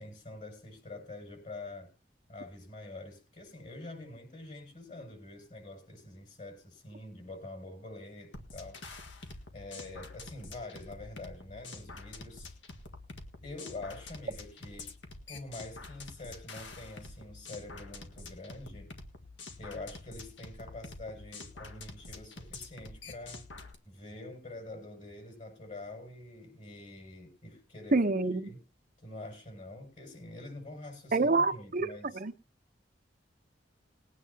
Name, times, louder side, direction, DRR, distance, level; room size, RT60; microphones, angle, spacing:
voice 1, 0.0-1.9 2.3-8.8 9.1-9.2 9.5-12.5 13.4-14.9 15.3-18.9 19.6-23.5 23.8-28.0 28.5-28.6 29.0-32.2, left 2 dB, 45° left, 2 dB, 7.2 m, -46 dB
sound 1, 8.3-23.7, left 3 dB, 80° left, 1.8 m, -47 dB
voice 2, 27.9-28.5 31.1-31.9 32.1-32.3, right 3 dB, 50° right, 8 dB, 0.9 m, -27 dB
20.5 x 9.4 x 2.9 m, 0.31 s
head